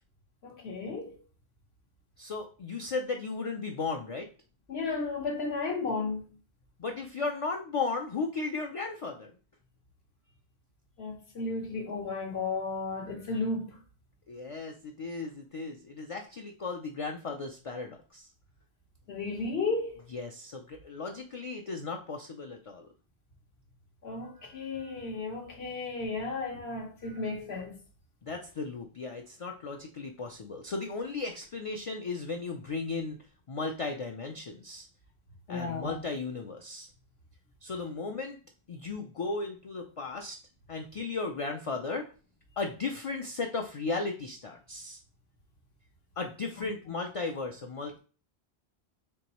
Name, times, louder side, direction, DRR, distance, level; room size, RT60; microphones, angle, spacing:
voice 1, 0.4-1.2 4.7-6.2 11.0-13.7 19.1-20.0 24.0-27.8 35.5-36.0 46.6-46.7, left 3 dB, 75° left, 1.2 m, -34 dB
voice 2, 2.2-4.3 6.8-9.3 14.3-18.3 20.1-22.9 28.2-33.2 33.5-34.9 35.5-36.9 37.6-38.4 38.7-40.4 40.7-42.1 42.6-45.0 46.2-48.0, left 3 dB, 60° left, 0.3 m, -35 dB
4.6 x 3.0 x 2.9 m
omnidirectional pair, 1.1 m